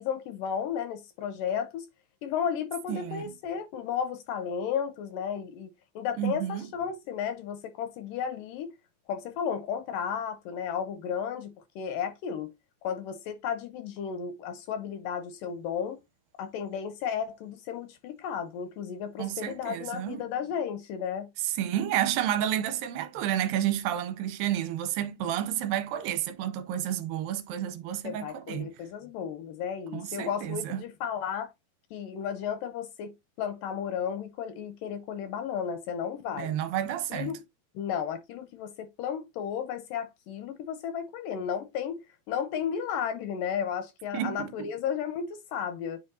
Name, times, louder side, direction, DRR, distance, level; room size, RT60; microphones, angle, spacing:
voice 1, 0.0-1.9 2.2-8.7 9.1-12.5 12.8-16.0 16.4-21.3 28.0-31.5 31.9-36.5 37.1-37.4 37.8-42.0 42.3-46.0, left 8 dB, 80° left, 2.1 m, -33 dB
voice 2, 2.9-3.3 6.2-6.7 19.2-20.2 21.4-28.7 29.9-30.8 36.4-37.3 44.1-44.7, right 11 dB, 85° right, 2.3 m, -30 dB
9.7 x 4.2 x 2.6 m
omnidirectional pair, 4.3 m